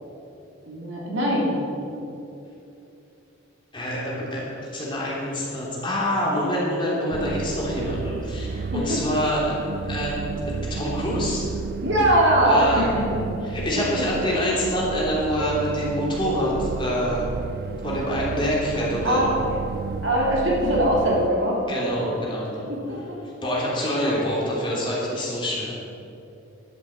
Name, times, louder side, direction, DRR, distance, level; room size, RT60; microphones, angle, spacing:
voice 1, 0.6-1.6 8.7-9.0 11.8-13.2 13.7-14.0 19.0-19.3 20.0-22.1 22.7-23.2, right 1 dB, 65° right, -4 dB, 3.3 m, -22 dB
voice 2, 3.7-9.5 9.9-10.1 10.7-11.5 12.4-12.9 13.4-17.3 17.8-19.3 21.7-22.6 23.4-25.7, equal, 25° left, -5 dB, 3.2 m, -26 dB
sound 1, 7.1-21.3, right 5 dB, 45° right, 0.3 m, -32 dB
12.0 x 7.8 x 8.2 m, 2.8 s
head